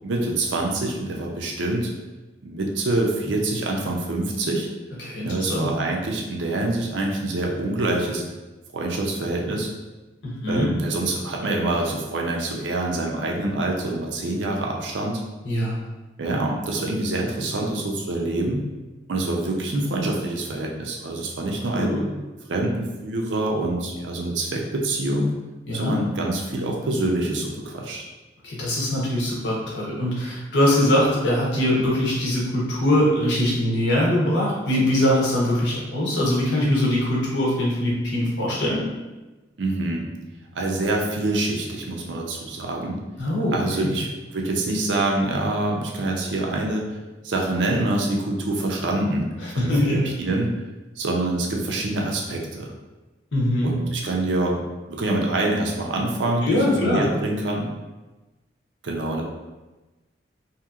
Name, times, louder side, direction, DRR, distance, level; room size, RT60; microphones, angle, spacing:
voice 1, 0.0-1.9 2.4-4.7 5.2-8.2 8.7-9.7 10.5-15.2 16.2-18.6 19.1-21.9 22.5-25.3 25.7-28.0 39.6-40.1 40.5-43.0 43.5-44.1 44.3-47.0 47.2-49.3 49.5-50.5 51.0-52.7 53.6-54.6 54.9-57.7 58.8-59.2, right 2 dB, 90° right, 0 dB, 0.5 m, -25 dB
voice 2, 5.0-5.7 10.2-10.7 15.4-15.7 21.8-22.0 25.7-25.9 28.4-38.9 43.2-43.9 49.4-50.0 53.3-53.7 56.4-57.0, left 1 dB, 80° left, -4 dB, 0.9 m, -22 dB
2.9 x 2.7 x 2.4 m, 1.1 s
head